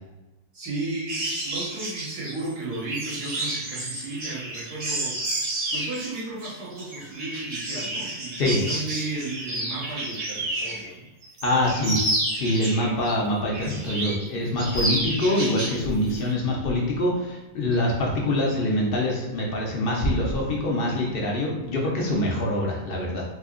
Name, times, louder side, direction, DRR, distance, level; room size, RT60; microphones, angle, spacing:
voice 1, 0.5-11.1 17.7-18.0, right 2 dB, 85° right, -5 dB, 1.7 m, -34 dB
sound 1, 1.1-10.9 11.2-13.1 13.5-14.3 14.6-15.8 16.1-16.3, right 1 dB, 65° right, 1.5 m, -30 dB
voice 2, 11.4-12.0 12.3-23.2, left 1 dB, 55° left, -2 dB, 0.6 m, -24 dB
4.2 x 2.8 x 2.4 m, 1.1 s
omnidirectional pair, 1.7 m